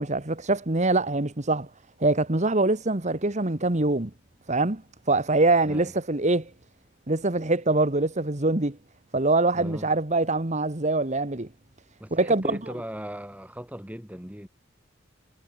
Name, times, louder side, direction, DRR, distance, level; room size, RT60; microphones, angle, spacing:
voice 1, 0.0-1.7 2.0-4.1 4.5-4.8 5.1-6.5 7.1-8.8 9.1-11.5 12.1-12.6, right 2 dB, 35° right, 1.6 m, -24 dB
voice 2, 5.6-6.0 9.5-9.9 12.0-14.5, equal, 5° right, 5.3 m, -38 dB
head